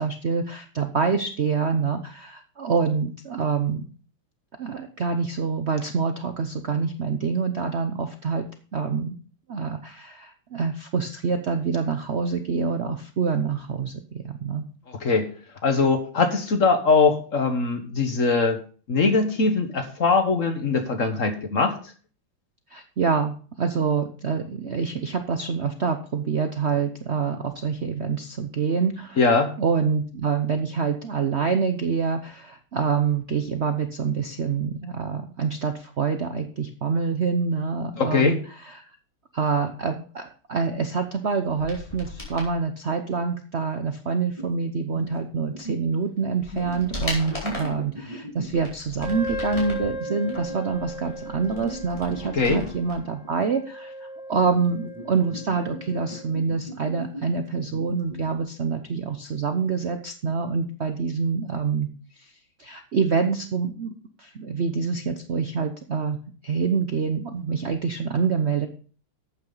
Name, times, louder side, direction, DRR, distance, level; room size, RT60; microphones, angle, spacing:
voice 1, 0.0-3.8 4.6-8.4 8.7-9.1 9.5-14.7 22.7-29.2 29.6-38.9 39.3-61.9 62.2-62.3 62.6-63.9 64.2-68.7, right 5 dB, 80° right, 7 dB, 0.6 m, -26 dB
voice 2, 15.6-18.6 18.9-21.8 29.2-29.5 38.0-38.4 52.3-52.7, left 4 dB, 45° left, 7 dB, 1.4 m, -21 dB
sound 1, 41.5-42.5 45.6-45.7 46.2-47.8 48.4-49.9 50.3-53.0 53.2-53.3, left 2 dB, 15° left, 4.5 m, -37 dB
sound 2, 44.4-44.5 44.9-45.9 46.5-48.6 49.5-50.6 51.5-53.3 54.4-58.4, right 1 dB, 15° right, 1.7 m, -38 dB
Wind instrument woodwind instrument, 49.0-56.3, equal, 80° left, 4.3 m, -37 dB
12.5 x 8.8 x 4.0 m, 0.40 s
omnidirectional pair, 2.4 m